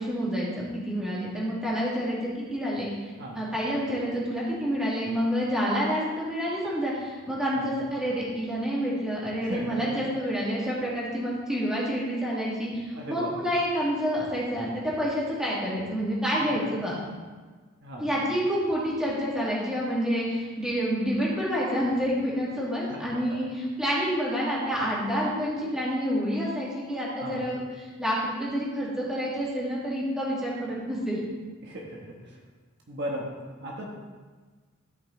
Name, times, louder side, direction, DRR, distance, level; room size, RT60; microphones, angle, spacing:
voice 1, 0.0-16.9 18.0-31.2, equal, 5° right, -7 dB, 2.3 m, -28 dB
voice 2, 9.4-9.9 12.9-13.5 16.4-16.6 17.8-18.1 20.0-20.1 22.9-23.4 27.2-27.5 31.6-32.4 32.9-33.9, equal, 50° right, -1 dB, 1.3 m, -37 dB
13.5 x 5.3 x 4.0 m, 1.4 s
head